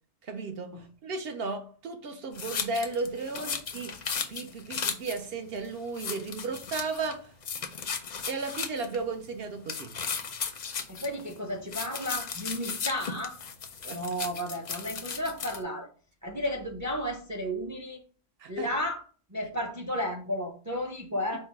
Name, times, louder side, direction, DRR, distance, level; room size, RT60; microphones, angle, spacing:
voice 1, 0.2-4.0 4.3-7.3 8.3-10.0 13.8-14.0 18.4-18.7, right 3 dB, 65° right, 0.8 m, -35 dB
sound 1, 2.3-5.2 5.6-5.7 5.9-7.1 7.4-9.0 9.7-11.4 11.7-15.6, left 6 dB, 55° left, 0.5 m, -35 dB
voice 2, 10.9-13.4 13.9-15.9 16.2-18.0 18.5-19.0 19.3-21.5, equal, 25° right, 0.4 m, -33 dB
4.5 x 2.1 x 4.6 m
omnidirectional pair, 1.2 m